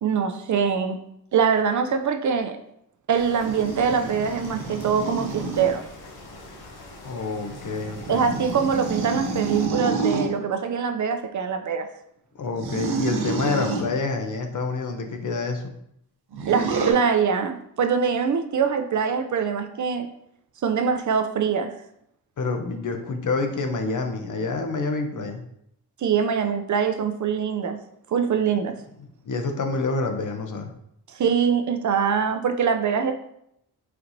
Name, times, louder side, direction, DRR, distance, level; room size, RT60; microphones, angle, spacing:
voice 1, 0.0-1.0 1.3-2.6 3.1-5.8 8.1-11.9 16.4-20.1 20.6-21.7 26.0-27.8 28.1-28.8 31.1-33.1, right 6 dB, 50° right, 7 dB, 0.4 m, -23 dB
sound 1, 3.1-9.7, left 2 dB, 75° left, 0.9 m, -43 dB
sound 2, 3.4-5.7 7.3-10.3 12.5-13.9 16.3-16.9, right 4 dB, 75° right, 0.8 m, -28 dB
voice 2, 7.0-8.3 12.4-15.7 22.4-25.4 29.2-30.7, left 3 dB, 50° left, 5 dB, 0.6 m, -27 dB
4.4 x 4.1 x 2.6 m, 0.75 s
wide cardioid pair, 120°, 39 cm